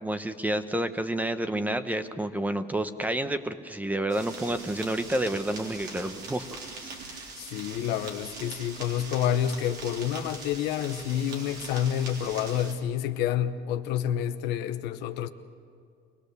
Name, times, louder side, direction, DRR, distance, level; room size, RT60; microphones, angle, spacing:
voice 1, 0.0-7.2, right 1 dB, 10° right, 0.9 m, -30 dB
sound 1, 4.1-12.7, right 3 dB, 80° right, 3.7 m, -42 dB
voice 2, 7.4-15.3, left 10 dB, 90° left, 0.9 m, -29 dB
24.0 x 18.5 x 6.8 m
cardioid pair, 110°, 17 cm